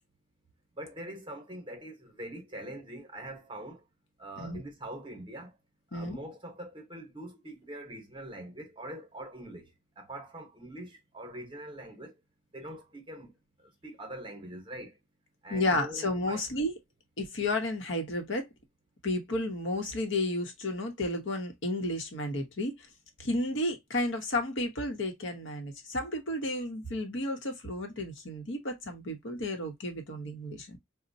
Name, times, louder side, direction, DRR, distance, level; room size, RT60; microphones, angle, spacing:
voice 1, 0.7-3.8 4.2-5.5 5.9-12.1 12.5-13.3 13.6-15.0 15.4-16.4, right 1 dB, 25° right, 0.9 m, -43 dB
voice 2, 15.5-16.7 17.2-18.5 19.0-22.9 23.2-30.8, left 1 dB, 65° left, 0.8 m, -32 dB
4.1 x 2.1 x 2.6 m
head